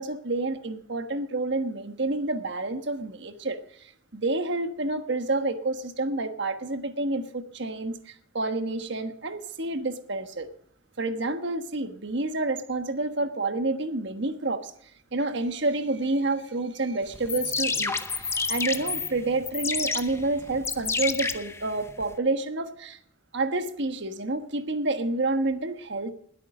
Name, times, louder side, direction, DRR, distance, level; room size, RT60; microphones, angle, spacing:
voice 1, 0.0-10.5 11.0-14.7 15.1-23.0 23.3-26.1, right 2 dB, 60° right, 1.3 m, -29 dB
sound 1, 17.1-22.1, left 4 dB, 15° left, 0.7 m, -30 dB
20.5 x 8.6 x 5.0 m
head